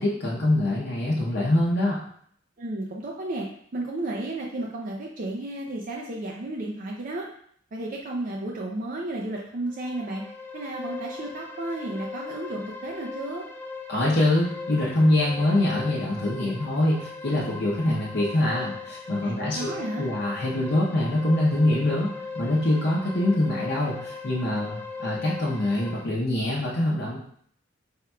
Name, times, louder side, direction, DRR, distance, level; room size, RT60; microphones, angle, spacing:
voice 1, 0.0-2.0 13.9-27.2, left 1 dB, 60° left, -5 dB, 0.7 m, -24 dB
voice 2, 2.6-3.5 3.7-7.3 7.7-10.2 10.5-13.4 19.2-20.1, right 2 dB, 45° right, -1 dB, 0.5 m, -33 dB
sound 1, 9.7-26.0, left 4 dB, 10° left, 0.6 m, -39 dB
4.3 x 3.6 x 2.3 m, 0.63 s
head